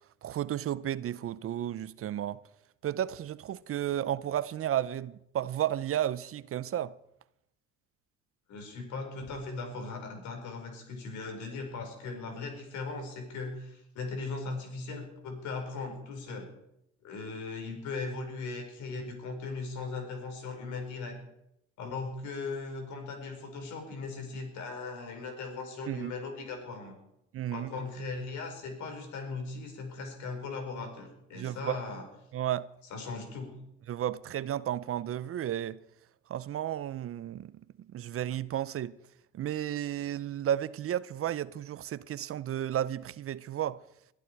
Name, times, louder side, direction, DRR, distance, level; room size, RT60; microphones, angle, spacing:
voice 1, 0.2-2.4 2.8-6.9 25.9-26.1 27.3-27.7 31.3-31.8 32.3-32.7 33.9-35.8 36.3-37.5 37.9-38.9 39.3-43.8, right 11 dB, 50° right, 0.6 m, -33 dB
voice 2, 8.5-16.5 17.0-21.2 21.8-27.0 27.5-32.0 32.9-33.5, left 3 dB, 75° left, 5.0 m, -38 dB
22.0 x 12.5 x 4.7 m
supercardioid pair, 85°, 30 cm